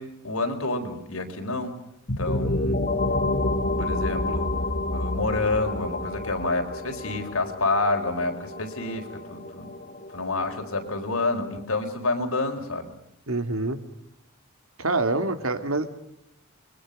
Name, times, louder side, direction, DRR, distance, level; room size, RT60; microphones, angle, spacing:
voice 1, 0.0-1.8 2.2-2.8 3.8-4.5 4.9-9.7 10.1-12.9, left 2 dB, 85° left, 4 dB, 4.3 m, -28 dB
sound 1, 2.1-11.6, left 2 dB, 40° left, 1.4 m, -29 dB
voice 2, 13.3-13.8 14.8-15.9, right 2 dB, 80° right, 8 dB, 2.4 m, -26 dB
29.5 x 22.5 x 5.4 m, 0.79 s
head